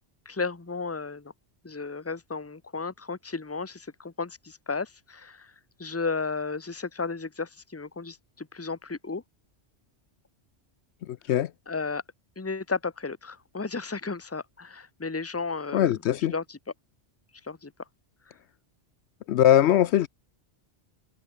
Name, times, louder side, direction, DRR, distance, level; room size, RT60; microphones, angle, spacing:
voice 1, 0.2-1.3 1.6-5.5 5.8-9.2 11.7-12.0 12.4-15.9 16.3-16.6 17.4-17.7, left 4 dB, 15° left, 1.0 m, -33 dB
voice 2, 11.0-11.5 15.7-16.3 19.3-20.1, left 11 dB, 75° left, 0.9 m, -21 dB
omnidirectional pair, 1.2 m